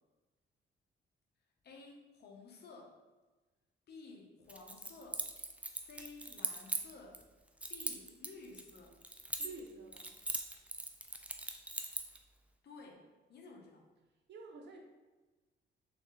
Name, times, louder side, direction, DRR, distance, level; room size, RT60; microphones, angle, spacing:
voice 1, 1.6-3.0 3.9-5.3 5.7-7.2 7.7-9.0 12.6-13.9, left 3 dB, 55° left, 1 dB, 0.9 m, -54 dB
Keys jangling, 4.5-7.2 7.6-9.7 9.9-12.2, right 1 dB, 5° right, 0.3 m, -40 dB
voice 2, 9.4-10.2 14.3-14.8, right 3 dB, 60° right, 1 dB, 0.7 m, -49 dB
3.4 x 3.2 x 3.4 m, 1.2 s
cardioid pair, 90°, 20 cm